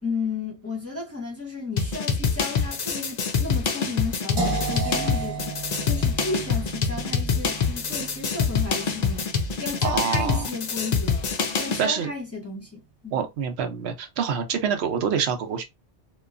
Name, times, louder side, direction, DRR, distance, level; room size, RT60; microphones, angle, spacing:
voice 1, 0.0-9.3 9.6-11.3 11.6-13.3, left 4 dB, 15° left, 0.7 m, -33 dB
sound 1, 1.8-11.9, left 5 dB, 60° left, 0.4 m, -26 dB
sound 2, 4.4-10.3, right 3 dB, 25° right, 0.8 m, -33 dB
voice 2, 9.8-10.5 11.6-12.1 13.1-15.6, right 7 dB, 70° right, 0.9 m, -26 dB
2.9 x 2.3 x 2.4 m
omnidirectional pair, 1.2 m